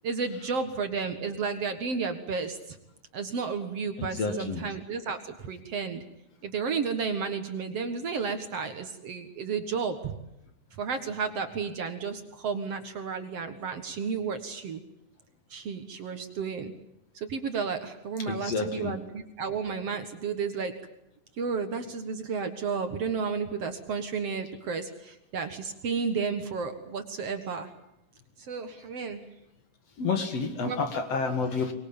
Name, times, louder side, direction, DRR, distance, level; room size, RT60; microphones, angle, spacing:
voice 1, 0.0-2.8 3.1-6.0 6.4-10.1 10.8-14.8 15.5-16.7 17.2-20.7 21.4-27.7 28.5-29.2 30.7-30.8, right 5 dB, 55° right, 8 dB, 2.3 m, -32 dB
voice 2, 4.0-4.6 18.3-19.0 30.0-31.7, left 4 dB, 50° left, 7 dB, 2.9 m, -29 dB
24.5 x 21.5 x 8.8 m, 0.84 s
omnidirectional pair, 3.8 m